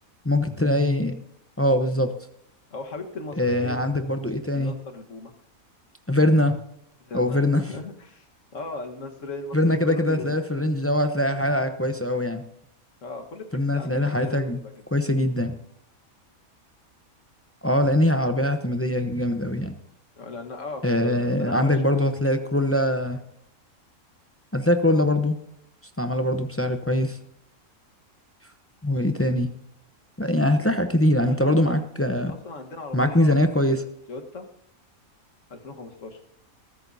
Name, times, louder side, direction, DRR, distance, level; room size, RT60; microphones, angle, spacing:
voice 1, 0.2-1.2 1.6-2.1 3.4-4.7 6.1-6.6 7.1-7.6 9.5-12.4 13.5-14.6 14.9-15.6 17.6-19.7 20.8-23.2 24.5-25.4 26.0-27.2 28.8-29.5 30.2-32.3 32.9-33.8, left 1 dB, 15° left, 7 dB, 0.6 m, -22 dB
voice 2, 2.7-3.8 4.5-5.3 7.0-8.3 8.5-10.3 13.0-13.5 13.7-14.7 20.2-22.1 31.3-31.8 32.2-33.6 34.1-34.5 35.5-36.2, left 2 dB, 60° left, 4 dB, 1.8 m, -38 dB
21.5 x 13.5 x 2.7 m, 0.74 s
omnidirectional pair, 1.5 m